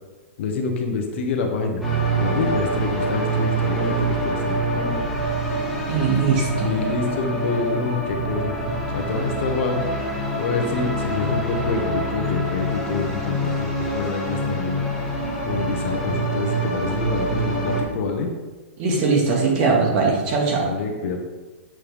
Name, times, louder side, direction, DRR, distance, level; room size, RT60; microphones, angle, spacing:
voice 1, 0.4-1.8 2.2-5.1 6.6-8.5 8.9-9.8 10.4-13.7 13.9-14.8 15.4-18.3 20.6-21.2, left 4 dB, 60° left, 3 dB, 1.1 m, -26 dB
sound 1, 1.8-17.8, right 2 dB, ahead, 1.6 m, -25 dB
voice 2, 5.9-6.7 18.8-20.7, right 4 dB, 45° right, -1 dB, 1.9 m, -20 dB
7.3 x 4.5 x 3.5 m, 1.3 s
hypercardioid pair, 145°, 7 cm